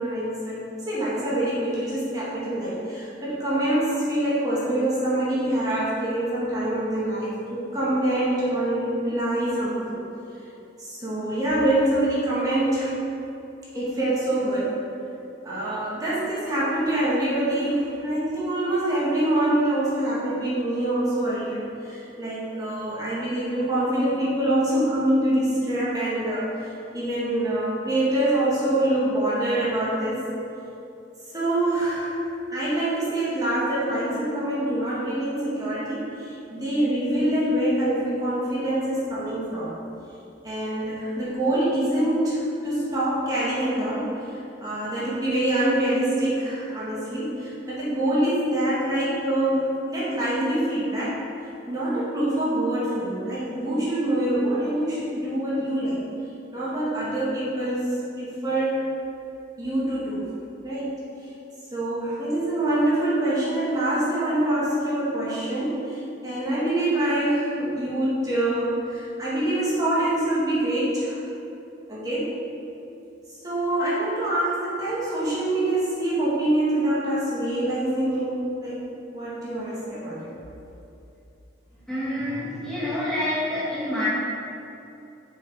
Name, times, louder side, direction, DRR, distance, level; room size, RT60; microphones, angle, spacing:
voice 1, 0.0-10.1 10.8-13.0 13.7-14.8 15.4-30.3 31.3-32.2 32.5-39.7 40.4-51.2 51.7-56.0 56.5-57.9 58.2-58.8 59.6-60.3 60.6-60.9 61.7-71.2 71.9-72.3 73.4-78.8 79.1-80.3, right 1 dB, 20° right, -9 dB, 1.8 m, -25 dB
voice 2, 81.9-84.1, left 1 dB, 5° left, -11 dB, 1.6 m, -27 dB
7.0 x 6.3 x 4.7 m, 2.8 s
head